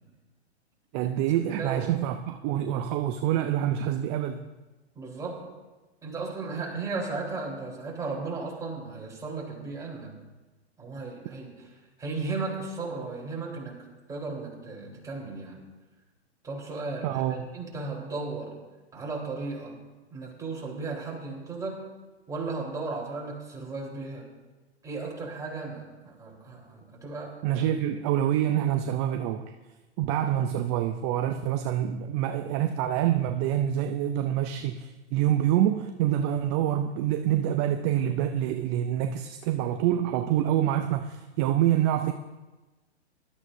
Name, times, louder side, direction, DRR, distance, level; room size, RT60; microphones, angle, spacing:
voice 1, 0.9-4.5 17.0-17.5 27.4-29.5 30.0-42.1, right 11 dB, 25° right, 7 dB, 0.5 m, -26 dB
voice 2, 1.5-1.9 5.0-5.5 6.0-10.2 10.8-11.7 12.0-15.6 16.4-18.6 18.9-21.8 22.3-24.3 24.8-27.4, right 3 dB, 10° right, -4 dB, 4.0 m, -35 dB
19.5 x 13.0 x 2.7 m, 1.2 s
hypercardioid pair, 125°, 34 cm